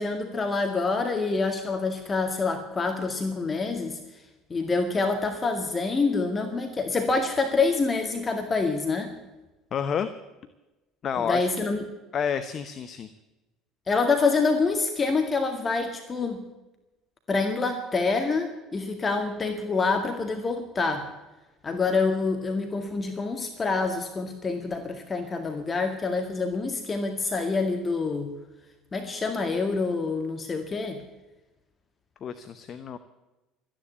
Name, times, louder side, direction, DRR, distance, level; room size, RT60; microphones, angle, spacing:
voice 1, 0.0-4.0 4.5-9.1 11.2-11.9 13.9-16.4 17.3-21.1 21.6-28.3 28.9-31.0, left 4 dB, 30° left, 5 dB, 2.0 m, -26 dB
voice 2, 9.7-10.1 11.0-11.5 12.1-13.1 32.2-33.0, left 7 dB, 45° left, 11 dB, 0.9 m, -29 dB
14.0 x 10.5 x 8.7 m, 1.1 s
hypercardioid pair, 65°, 0 cm